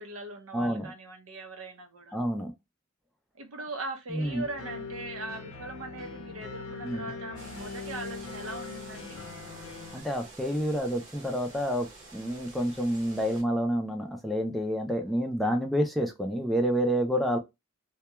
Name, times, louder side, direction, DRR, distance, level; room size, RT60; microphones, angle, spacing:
voice 1, 0.0-2.1 3.4-9.2, right 2 dB, 80° right, 0.7 m, -40 dB
voice 2, 0.5-0.9 2.1-2.5 4.1-4.4 6.8-7.1 9.9-17.4, equal, ahead, 0.4 m, -29 dB
sound 1, 4.2-10.0, left 4 dB, 70° left, 0.5 m, -41 dB
sound 2, 7.4-13.4, right 3 dB, 40° right, 0.8 m, -49 dB
2.2 x 2.2 x 2.9 m
head